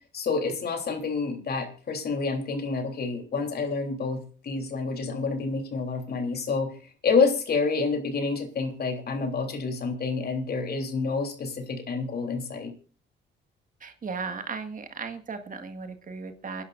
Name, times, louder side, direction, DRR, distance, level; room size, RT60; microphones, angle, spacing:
voice 1, 0.1-12.7, left 4 dB, 50° left, 4 dB, 3.4 m, -28 dB
voice 2, 13.8-16.6, right 5 dB, 45° right, 7 dB, 1.7 m, -36 dB
28.5 x 11.0 x 2.6 m, 0.37 s
cardioid pair, 90°, 20 cm